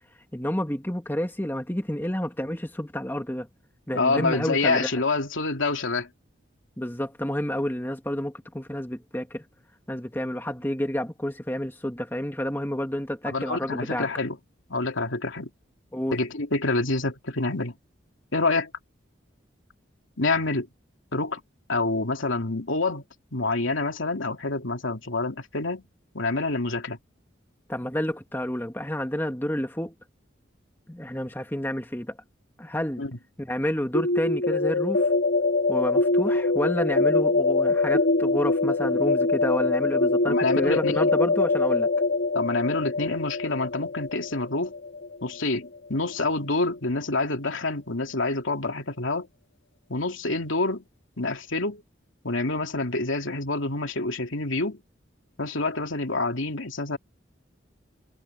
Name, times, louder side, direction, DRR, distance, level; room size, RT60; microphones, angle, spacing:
voice 1, 0.3-3.5 3.9-5.0 6.8-9.4 9.9-14.1 15.9-16.2 27.7-29.9 30.9-32.2 32.6-33.0 33.4-35.1 35.7-41.9, equal, 10° left, 2.0 m, -29 dB
voice 2, 3.9-6.1 13.2-14.4 14.7-15.5 16.1-17.7 18.3-18.7 20.2-20.7 21.1-21.4 21.7-23.0 23.3-25.8 26.1-27.0 33.0-33.1 40.3-41.1 42.3-44.7 45.2-49.3 49.9-50.8 51.2-51.8 52.2-54.8 55.4-57.0, left 3 dB, 85° left, 2.8 m, -27 dB
sound 1, 33.9-45.7, left 3 dB, 70° left, 1.8 m, -24 dB
head